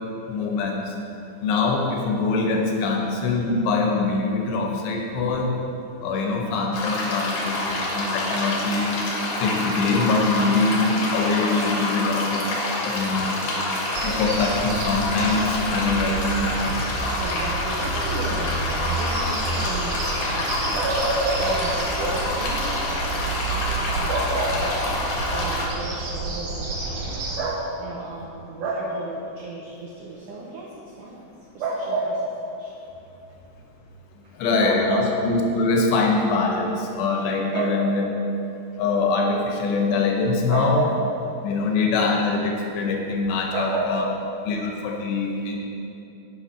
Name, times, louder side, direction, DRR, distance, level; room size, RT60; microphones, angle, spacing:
voice 1, 0.3-0.8 1.4-5.5 6.0-9.0 9.4-12.4 12.8-13.4 14.0-16.8 34.4-38.0 38.8-40.8 41.4-44.0 44.5-45.6, left 3 dB, 85° left, 1 dB, 3.3 m, -23 dB
sound 1, 6.7-25.7, left 2 dB, 60° left, 2.7 m, -27 dB
voice 2, 13.5-14.0 17.2-25.0 25.3-30.7 31.0-32.7 34.6-35.1 37.5-37.8 40.5-40.9 43.5-44.3, right 3 dB, 90° right, -3 dB, 1.7 m, -30 dB
sound 2, 13.9-27.4, right 3 dB, 60° right, 2.3 m, -30 dB
9.1 x 6.6 x 5.6 m, 2.8 s
omnidirectional pair, 4.8 m